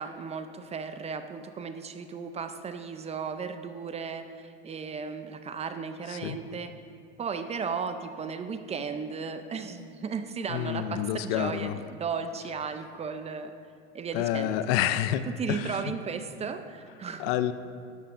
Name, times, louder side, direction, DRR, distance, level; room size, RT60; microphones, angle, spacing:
voice 1, 0.0-6.7 7.2-13.5 13.9-14.6 15.3-17.3, right 5 dB, 20° right, 9 dB, 0.5 m, -35 dB
voice 2, 10.5-11.7 14.1-15.6 17.2-17.5, left 11 dB, 60° left, 13 dB, 0.6 m, -28 dB
13.0 x 9.7 x 2.5 m, 2.3 s
supercardioid pair, 105°, 33 cm